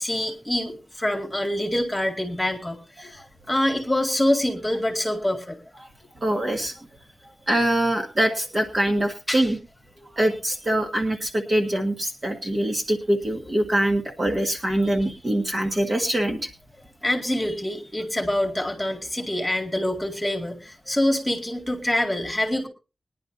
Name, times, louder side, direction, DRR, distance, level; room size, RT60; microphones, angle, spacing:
voice 1, 0.0-5.6 9.3-9.5 10.0-10.1 17.0-22.7, left 1 dB, 10° left, 2 dB, 2.2 m, -25 dB
voice 2, 6.2-6.9 7.5-9.6 10.1-16.5, right 1 dB, 35° right, 3 dB, 1.6 m, -24 dB
21.0 x 10.5 x 2.7 m, 0.29 s
wide cardioid pair, 135°, 0 cm